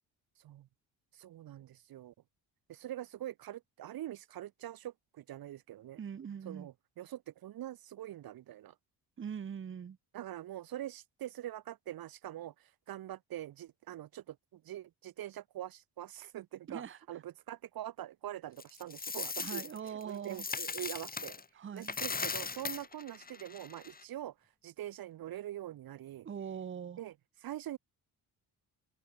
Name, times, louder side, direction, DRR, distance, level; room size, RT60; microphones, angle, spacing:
voice 1, 1.1-2.1 2.7-6.0 6.4-8.7 10.1-21.4 21.7-24.3 24.6-26.3 27.0-27.1 27.4-27.8, right 13 dB, 60° right, 1.1 m, -44 dB
voice 2, 6.0-6.7 9.2-10.0 16.7-17.0 19.4-20.5 21.5-22.0 26.2-27.0, right 7 dB, 30° right, 1.0 m, -42 dB
Coin (dropping), 18.6-21.4 21.8-24.0, left 5 dB, 20° left, 1.5 m, -39 dB
open air
cardioid pair, 135°, 39 cm